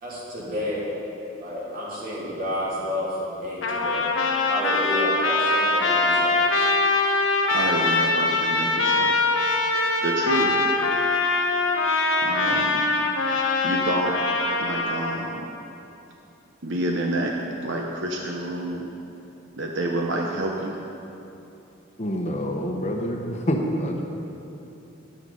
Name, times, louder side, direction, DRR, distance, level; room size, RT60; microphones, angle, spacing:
voice 1, 0.0-0.8 1.4-4.0 4.5-6.5, left 1 dB, 45° right, -7 dB, 3.1 m, -30 dB
Trumpet, 3.6-15.2, left 3 dB, 70° left, 1.1 m, -23 dB
voice 2, 7.5-9.1 10.0-10.7 12.2-12.8 13.6-14.2 14.6-15.5 16.6-17.4 17.6-18.9 19.5-20.8, right 1 dB, 60° right, 0 dB, 0.8 m, -28 dB
voice 3, 22.0-24.0, equal, 35° left, 1 dB, 0.9 m, -26 dB
11.5 x 9.4 x 5.4 m, 2.9 s
head